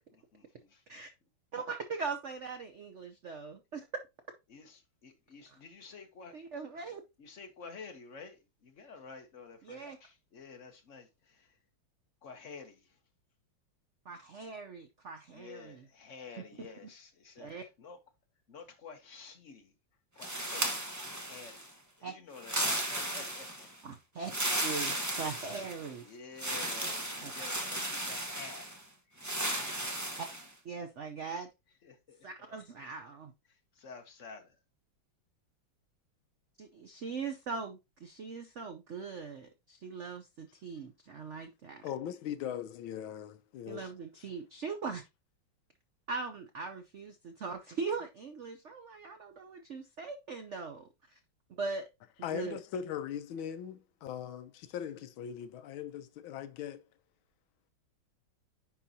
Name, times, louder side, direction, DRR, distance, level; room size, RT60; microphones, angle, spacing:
voice 1, 0.3-0.8 4.5-6.4 7.2-11.5 12.2-12.8 15.3-17.5 17.8-18.0 18.5-19.7 20.2-20.7 21.2-21.6 22.0-23.7 26.0-28.7 29.1-29.2 29.4-29.8 31.8-32.3 33.8-34.5, left 5 dB, 50° left, 1.0 m, -50 dB
voice 2, 1.5-3.9 5.5-5.6 6.3-7.0 9.6-10.0 14.1-15.9 16.4-16.7 17.4-17.6 22.0-22.1 23.8-24.3 24.6-26.0 27.2-27.3 30.6-31.5 32.2-33.3 36.6-41.9 43.7-45.0 46.1-51.2 51.6-51.9 52.3-52.6, right 4 dB, 85° right, 0.6 m, -40 dB
sound 1, 20.2-21.7 22.4-23.7 24.2-25.9 26.4-28.8 29.2-30.5, right 1 dB, 15° right, 0.7 m, -35 dB
voice 3, 41.8-43.9 52.2-56.8, left 9 dB, 80° left, 1.4 m, -40 dB
10.0 x 4.0 x 2.8 m
omnidirectional pair, 2.3 m